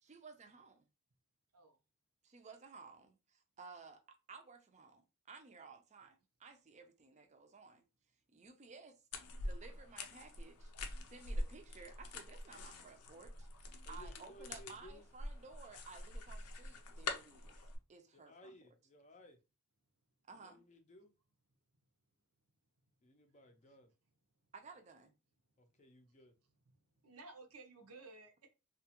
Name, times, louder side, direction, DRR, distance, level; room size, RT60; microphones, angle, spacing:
voice 1, 0.0-0.9 2.2-4.0 4.3-7.8 8.3-8.9 9.4-10.7 11.0-17.6 17.9-18.5 20.3-20.6 24.5-25.1, right 4 dB, 30° right, 0.5 m, -56 dB
sound 1, 9.1-17.8, left 2 dB, 85° left, 0.5 m, -45 dB
voice 2, 13.8-15.1 18.1-19.4 20.3-21.1 23.0-23.9 25.6-26.3, left 1 dB, 30° left, 0.5 m, -59 dB
voice 3, 26.7-28.5, right 3 dB, 80° right, 0.7 m, -56 dB
2.9 x 2.3 x 2.8 m
head